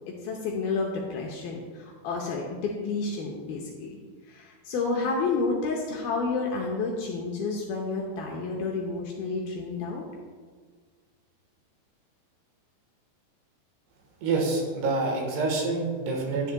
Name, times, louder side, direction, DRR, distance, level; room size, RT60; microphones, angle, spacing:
voice 1, 0.2-4.0 4.3-10.1, left 4 dB, 75° left, -1 dB, 2.3 m, -30 dB
voice 2, 14.2-16.5, right 3 dB, 75° right, 0 dB, 3.3 m, -27 dB
10.5 x 9.6 x 2.2 m, 1.5 s
omnidirectional pair, 5.0 m